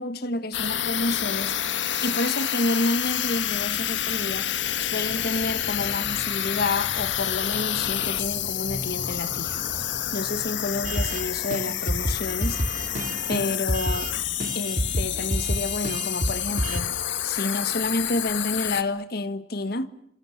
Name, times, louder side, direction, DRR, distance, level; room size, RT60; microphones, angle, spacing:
voice 1, 0.0-1.6 2.0-4.5 4.8-9.7 10.1-12.6 13.3-14.1 14.5-17.0 17.2-19.9, left 2 dB, 55° left, 1.4 m, -29 dB
sound 1, 0.5-18.8, left 11 dB, 75° left, 1.8 m, -29 dB
sound 2, 3.6-11.3, equal, 15° left, 7.9 m, -42 dB
sound 3, 10.8-11.2 11.5-11.6 11.9-14.1 14.4-16.8, right 1 dB, 45° right, 2.7 m, -28 dB
27.0 x 26.5 x 7.2 m
head